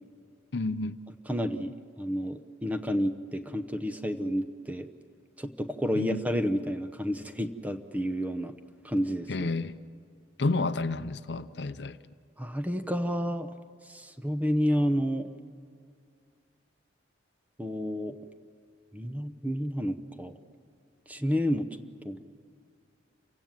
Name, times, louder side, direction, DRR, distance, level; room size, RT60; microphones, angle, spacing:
voice 1, 0.5-1.0 5.9-6.2 9.3-9.7 10.4-12.0, left 3 dB, 60° left, 12 dB, 0.6 m, -30 dB
voice 2, 1.3-4.9 5.4-8.5 8.8-9.5 12.4-13.5 13.9-15.3 17.6-18.1 18.9-20.3 21.1-21.7 22.0-22.2, equal, 10° right, 8 dB, 0.8 m, -30 dB
28.0 x 16.5 x 7.5 m, 2.2 s
head